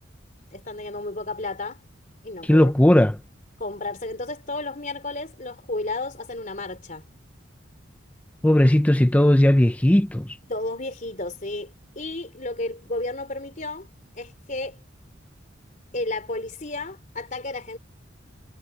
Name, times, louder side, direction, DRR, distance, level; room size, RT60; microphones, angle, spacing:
voice 1, 0.5-1.8 2.2-2.7 3.6-7.1 10.5-13.9 14.1-14.8 15.9-17.8, left 2 dB, 40° left, 3.9 m, -32 dB
voice 2, 2.4-3.2 8.4-10.3, left 1 dB, 10° left, 0.5 m, -17 dB
head